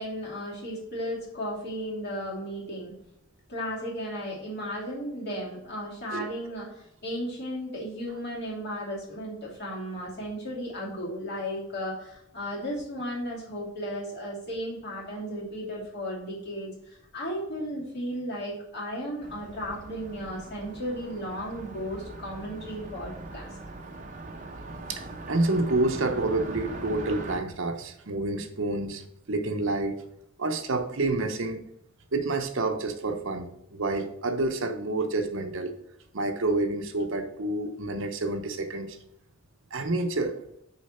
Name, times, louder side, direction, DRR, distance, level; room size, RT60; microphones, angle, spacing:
voice 1, 0.0-2.9 3.5-23.5, equal, 50° left, -4 dB, 2.6 m, -35 dB
Car passing by, 19.2-27.4, right 2 dB, 35° right, 0.7 m, -41 dB
voice 2, 24.9-29.0 29.3-30.0 30.4-31.6 32.1-35.7 36.1-39.0 39.7-40.4, right 2 dB, 65° right, 6 dB, 0.8 m, -28 dB
6.4 x 4.6 x 4.3 m, 0.77 s
head